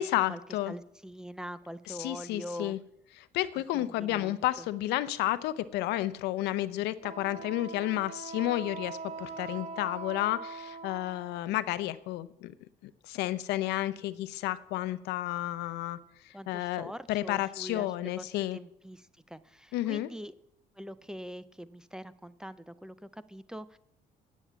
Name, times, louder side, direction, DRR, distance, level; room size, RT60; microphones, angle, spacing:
voice 1, 0.0-0.7 1.9-2.8 3.2-12.5 12.8-16.0 16.2-18.6 19.7-20.1, left 15 dB, 90° left, 15 dB, 0.6 m, -31 dB
voice 2, 0.7-2.7 3.7-4.7 16.3-20.3 20.8-23.8, equal, 5° right, 15 dB, 0.5 m, -43 dB
Wind instrument woodwind instrument, 7.0-11.5, right 4 dB, 45° right, 1.5 m, -42 dB
9.5 x 7.3 x 8.0 m, 0.76 s
cardioid pair, 110°, 17 cm